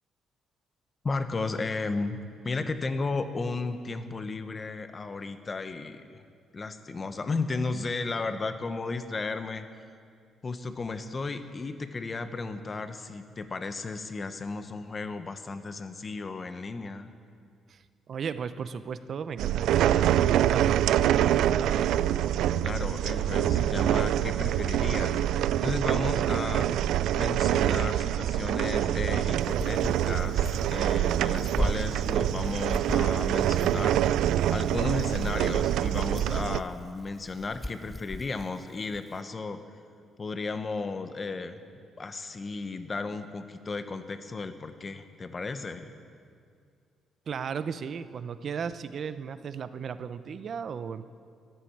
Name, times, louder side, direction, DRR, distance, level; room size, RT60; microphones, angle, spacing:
voice 1, 1.0-2.2 2.4-6.2 6.5-9.7 10.4-17.1 22.6-25.2 25.6-26.7 27.1-34.0 34.5-39.6 40.2-41.6 42.0-45.9, left 3 dB, 35° left, 9 dB, 1.1 m, -34 dB
voice 2, 17.7-21.9 47.3-51.1, right 6 dB, 55° right, 12 dB, 0.7 m, -36 dB
sound 1, 19.4-36.6, right 11 dB, 85° right, 0.3 m, -25 dB
sound 2, 29.4-39.2, left 1 dB, 5° left, 0.4 m, -37 dB
14.0 x 11.0 x 8.7 m, 2.2 s
cardioid pair, 90°, 0 cm